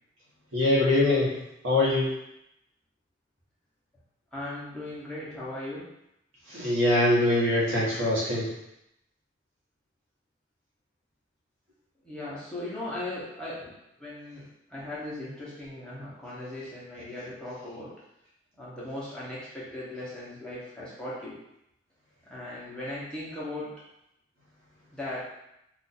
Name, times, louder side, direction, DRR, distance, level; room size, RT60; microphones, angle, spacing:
voice 1, 0.5-1.3 1.6-2.1 6.5-8.5, left 1 dB, 85° right, -6 dB, 1.1 m, -23 dB
voice 2, 4.3-5.9 12.0-13.7 14.0-17.9 18.6-21.4 22.3-23.7 24.9-25.2, left 1 dB, 5° left, -9 dB, 0.8 m, -38 dB
2.5 x 2.4 x 4.0 m, 0.82 s
head